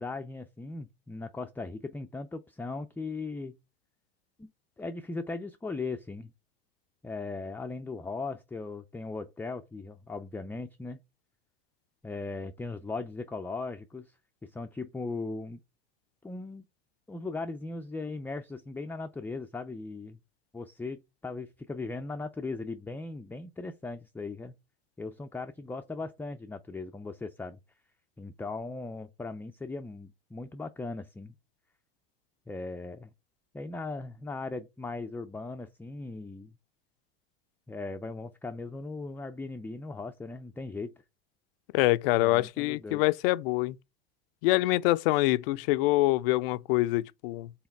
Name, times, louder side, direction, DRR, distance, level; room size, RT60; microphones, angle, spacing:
voice 1, 0.0-3.6 4.4-4.5 4.8-6.3 7.0-11.0 12.0-14.1 14.4-15.6 16.2-16.6 17.1-20.2 20.5-24.5 25.0-27.6 28.2-31.3 32.5-33.1 33.5-36.6 37.7-40.9 42.2-43.0, left 3 dB, 5° left, 0.4 m, -38 dB
voice 2, 41.7-43.8 44.4-47.5, left 19 dB, 75° left, 0.5 m, -25 dB
5.8 x 4.0 x 4.5 m
supercardioid pair, 100°, 29 cm